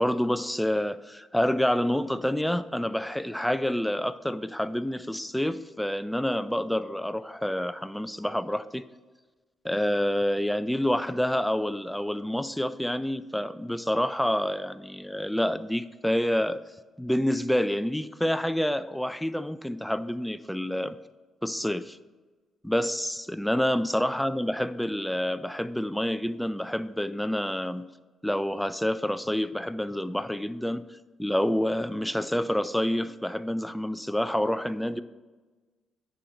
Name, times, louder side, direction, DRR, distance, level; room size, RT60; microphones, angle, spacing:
voice 1, 0.0-8.8 9.6-16.6 17.0-21.0 21.4-22.0 22.6-27.9 28.2-35.0, equal, 5° left, 0.3 m, -28 dB
9.7 x 4.9 x 3.2 m
cardioid pair, 90°, 0 cm